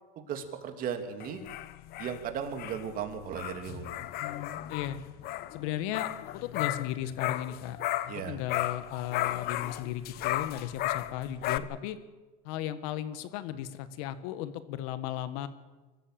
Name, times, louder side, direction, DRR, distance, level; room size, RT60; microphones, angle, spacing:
voice 1, 0.2-1.4 2.0-4.0 8.1-8.4, right 7 dB, 50° right, 6 dB, 2.9 m, -36 dB
sound 1, 1.2-8.2 8.5-11.6, left 15 dB, 55° left, 1.0 m, -35 dB
voice 2, 4.2-5.0 5.5-7.8 8.0-12.0 12.4-15.5, left 12 dB, 70° left, 12 dB, 1.6 m, -36 dB
23.5 x 14.5 x 7.7 m, 1.2 s
supercardioid pair, 105°, 19 cm